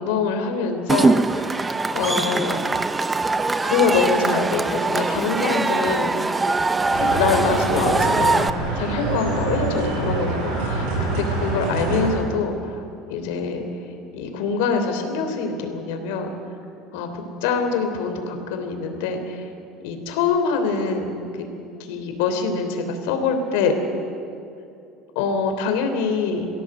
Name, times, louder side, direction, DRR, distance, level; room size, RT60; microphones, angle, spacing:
voice 1, 0.0-1.5 1.9-2.6 3.6-6.1 7.0-8.4 8.7-12.8 13.1-13.6 14.1-16.3 16.9-19.4 19.8-21.1 21.4-21.5 21.9-23.7 25.1-26.5, left 5 dB, 85° left, 5 dB, 3.3 m, -24 dB
Cheering / Crowd, 0.9-8.5, right 3 dB, 10° right, 0.6 m, -22 dB
sound 1, 6.9-12.1, right 2 dB, 65° right, 7.1 m, -25 dB
24.0 x 16.5 x 7.9 m, 2.6 s
cardioid pair, 160°, 0 cm